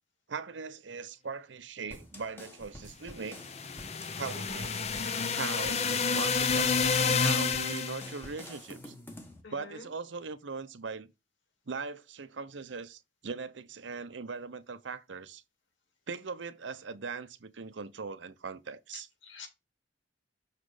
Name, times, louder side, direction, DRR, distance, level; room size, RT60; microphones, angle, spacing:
voice 1, 0.3-3.4 4.1-4.8 5.3-8.9 9.5-11.1 11.7-15.4 16.1-19.1, right 5 dB, 80° right, 0.7 m, -40 dB
sound 1, 1.9-9.4, left 1 dB, 10° left, 1.2 m, -49 dB
sound 2, 3.2-8.2, left 5 dB, 35° left, 0.6 m, -29 dB
voice 2, 9.4-9.9 18.9-19.5, left 5 dB, 85° left, 2.3 m, -47 dB
6.4 x 4.1 x 4.9 m
head